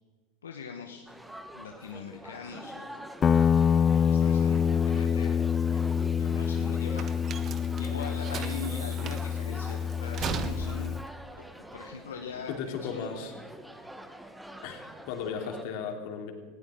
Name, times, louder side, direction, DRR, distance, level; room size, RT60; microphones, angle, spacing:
voice 1, 0.4-1.0 1.5-3.0 3.9-5.3 5.7-7.1 7.7-10.9 11.7-13.1, left 5 dB, 85° left, 3 dB, 1.2 m, -42 dB
sound 1, 1.1-15.6, equal, 5° right, 1.4 m, -46 dB
Guitar, 3.2-11.1, left 7 dB, 30° left, 0.4 m, -26 dB
sound 2, 6.0-12.5, right 7 dB, 40° right, 1.5 m, -39 dB
voice 2, 12.5-13.3 14.6-16.3, left 6 dB, 60° left, 3 dB, 3.1 m, -36 dB
19.5 x 16.5 x 3.8 m, 1.5 s
hypercardioid pair, 90°, 0 cm